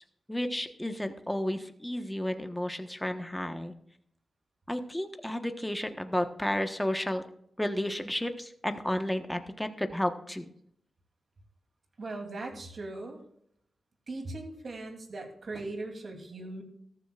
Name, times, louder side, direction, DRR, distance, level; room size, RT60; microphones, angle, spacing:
voice 1, 0.3-3.7 4.7-7.2 7.6-10.4, left 1 dB, 10° left, 6 dB, 1.2 m, -32 dB
voice 2, 12.0-13.2 14.1-16.6, right 2 dB, 55° right, 3 dB, 2.9 m, -39 dB
14.0 x 14.0 x 2.4 m, 0.69 s
cardioid pair, 75°, 0 cm